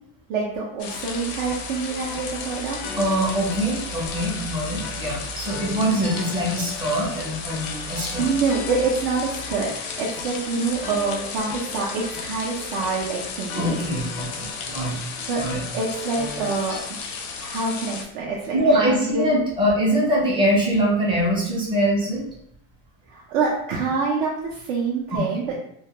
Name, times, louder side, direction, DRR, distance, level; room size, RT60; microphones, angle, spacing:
voice 1, 0.3-2.8 8.2-13.8 15.3-15.4 15.7-16.8 17.4-19.4 23.1-25.6, right 4 dB, 60° right, -4 dB, 0.5 m, -26 dB
sound 1, 0.8-18.0, left 4 dB, 90° left, 0.6 m, -34 dB
sound 2, 0.9-16.8, left 4 dB, 35° left, 0.4 m, -39 dB
voice 2, 3.0-8.2 13.6-15.0 15.4-15.6 18.5-22.2 25.1-25.2, equal, 15° right, -4 dB, 0.5 m, -23 dB
2.2 x 2.1 x 2.8 m, 0.72 s
supercardioid pair, 160°, 33 cm